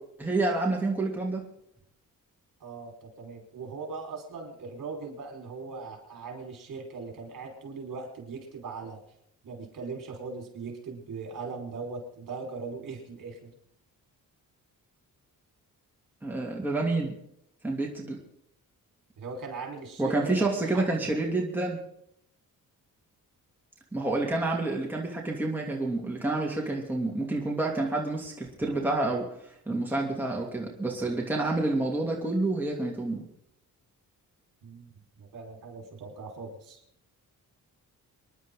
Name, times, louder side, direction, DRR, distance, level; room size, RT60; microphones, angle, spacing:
voice 1, 0.2-1.4 16.2-17.2 17.6-18.2 20.0-21.8 23.9-29.3 29.7-33.2, right 2 dB, 5° right, -2 dB, 3.0 m, -28 dB
voice 2, 2.6-9.0 9.4-13.5 19.2-20.4 20.7-21.1 34.6-34.9 35.2-36.8, right 4 dB, 65° right, 1 dB, 5.0 m, -39 dB
26.5 x 11.0 x 3.9 m, 0.73 s
wide cardioid pair, 135°, 35 cm